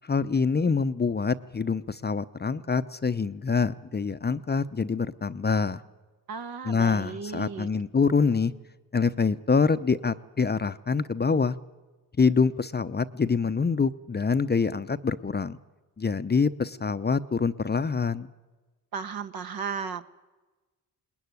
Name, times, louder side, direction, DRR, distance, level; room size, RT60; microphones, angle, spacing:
voice 1, 0.0-5.8 6.6-8.5 8.9-11.6 12.2-15.6 16.0-18.3, left 5 dB, 25° left, 12 dB, 0.7 m, -25 dB
voice 2, 6.3-7.7 18.9-20.0, right 6 dB, 60° right, 9 dB, 1.4 m, -35 dB
20.5 x 19.5 x 9.6 m, 1.2 s
supercardioid pair, 60°, 41 cm